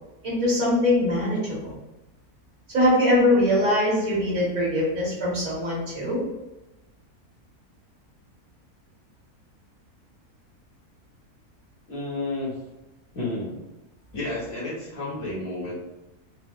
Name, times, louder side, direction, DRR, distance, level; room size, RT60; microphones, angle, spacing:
voice 1, 0.2-1.7 2.7-6.2, left 1 dB, 60° right, -7 dB, 2.1 m, -22 dB
voice 2, 11.9-12.6 13.1-13.6 14.1-15.8, left 2 dB, 65° left, -8 dB, 1.6 m, -31 dB
4.6 x 2.0 x 3.5 m, 1.0 s
omnidirectional pair, 1.6 m